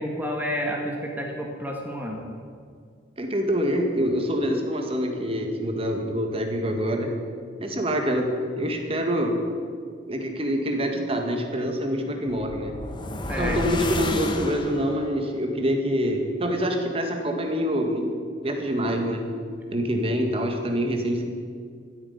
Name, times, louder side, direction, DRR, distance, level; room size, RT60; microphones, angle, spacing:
voice 1, 0.0-2.2 13.3-13.6, equal, 10° right, 0 dB, 1.8 m, -30 dB
voice 2, 3.2-7.1 7.6-8.3 8.6-9.4 10.1-12.8 13.4-18.1 18.4-19.2 19.7-21.2, equal, 30° right, 3 dB, 2.0 m, -25 dB
sound 1, 12.3-15.1, left 1 dB, 25° left, 1.2 m, -31 dB
14.5 x 9.6 x 9.5 m, 2.1 s
head